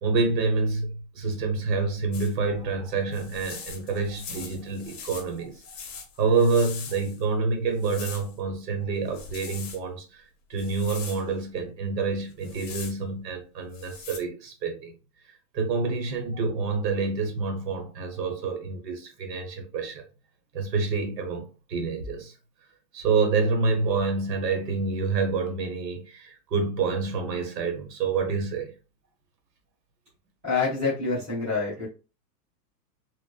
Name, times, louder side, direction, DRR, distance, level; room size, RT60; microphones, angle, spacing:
voice 1, 0.0-10.2 10.5-14.9 15.5-20.0 20.5-22.3 22.9-28.7, right 4 dB, 75° right, 1.0 m, -27 dB
sound 1, 2.1-2.3 3.1-7.2 7.8-8.3 9.1-9.8 10.6-11.2 12.3-13.0 13.7-14.2, left 6 dB, 50° left, 0.6 m, -41 dB
voice 2, 30.4-31.9, left 4 dB, 10° right, 0.5 m, -26 dB
3.0 x 2.1 x 2.2 m
supercardioid pair, 180°, 50 cm